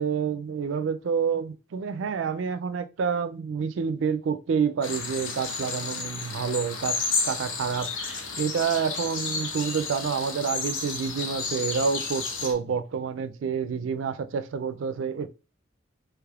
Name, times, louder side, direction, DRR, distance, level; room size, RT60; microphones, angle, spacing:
voice 1, 0.0-15.3, right 6 dB, 75° right, 0.4 m, -28 dB
sound 1, 4.8-12.5, left 4 dB, 75° left, 0.7 m, -32 dB
3.3 x 3.1 x 2.3 m
head